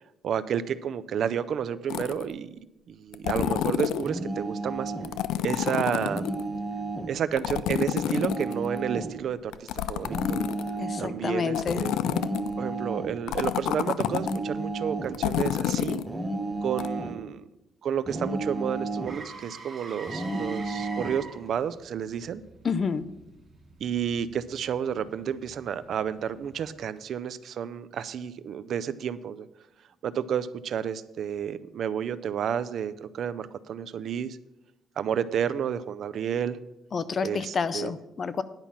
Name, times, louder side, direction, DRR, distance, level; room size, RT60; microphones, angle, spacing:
voice 1, 0.0-2.6 2.9-4.9 5.4-6.3 7.1-10.4 11.0-11.9 12.6-16.0 16.6-17.4 17.8-22.4 23.8-29.5 30.0-34.4 35.0-36.6 37.2-37.9, right 8 dB, 60° right, 15 dB, 0.5 m, -31 dB
sound 1, 1.9-2.3 3.1-4.1 5.0-6.4 7.4-8.8 9.5-10.8 11.5-12.5 13.3-14.4 15.1-16.1 16.8-16.9, left 11 dB, 85° left, 0.4 m, -29 dB
sound 2, 4.0-5.1 6.0-7.1 8.0-9.2 10.0-11.1 12.0-13.2 14.0-15.2 16.1-17.2 18.1-19.2 20.1-21.2, right 2 dB, 10° right, 1.4 m, -32 dB
voice 2, 10.8-11.8 22.6-23.1 36.9-38.4, left 5 dB, 40° left, 13 dB, 0.6 m, -29 dB
Motor vehicle (road), 19.1-27.0 31.3-31.4, right 3 dB, 30° right, 3.4 m, -46 dB
10.5 x 5.6 x 7.3 m, 0.91 s
cardioid pair, 120°, 0 cm